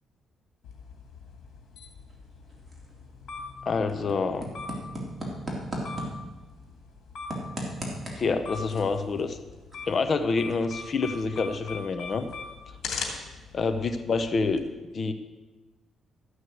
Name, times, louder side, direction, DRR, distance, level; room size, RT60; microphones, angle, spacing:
sound 1, 0.6-14.6, left 5 dB, 70° left, 2.8 m, -42 dB
sound 2, 2.0-13.7, right 1 dB, 20° right, 3.5 m, -41 dB
voice 1, 3.7-4.5 8.2-9.4 9.9-12.3 13.5-14.7 14.9-15.1, left 4 dB, 45° left, 10 dB, 0.8 m, -27 dB
14.0 x 6.3 x 8.0 m, 1.2 s
cardioid pair, 90°, 0 cm